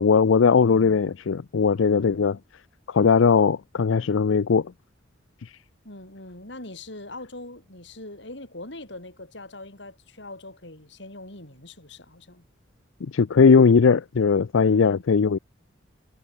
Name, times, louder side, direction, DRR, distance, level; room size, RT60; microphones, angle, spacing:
voice 1, 0.0-2.4 2.9-4.7 5.4-5.5 13.1-15.4, left 5 dB, 85° left, 0.5 m, -19 dB
voice 2, 0.6-1.0 1.9-2.3 5.8-12.4 14.6-15.0, left 2 dB, 65° left, 5.4 m, -42 dB
head